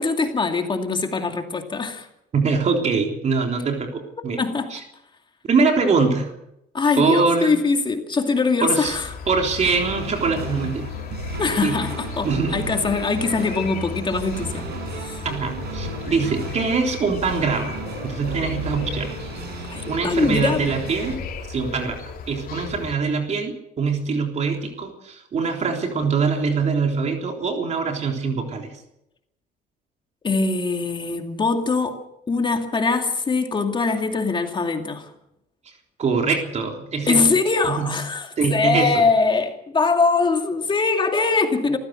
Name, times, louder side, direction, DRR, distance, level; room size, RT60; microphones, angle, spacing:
voice 1, 0.0-2.1 4.4-4.7 6.7-9.1 11.4-15.3 19.7-20.7 30.2-32.0 32.3-35.1 37.1-41.8, left 4 dB, 30° left, 2.5 m, -22 dB
voice 2, 2.3-4.4 4.7-4.8 5.5-6.3 7.0-7.5 8.6-9.0 9.3-10.9 11.6-11.8 12.2-12.7 15.2-17.7 18.0-19.2 19.9-21.2 21.5-28.7 36.0-37.2 37.6-37.9 38.4-38.9, right 4 dB, 40° right, 3.6 m, -23 dB
sound 1, 8.8-22.9, left 6 dB, 60° left, 3.8 m, -35 dB
sound 2, 9.6-21.2, right 5 dB, 75° right, 6.4 m, -34 dB
26.0 x 15.0 x 6.6 m
cardioid pair, 110°, 17 cm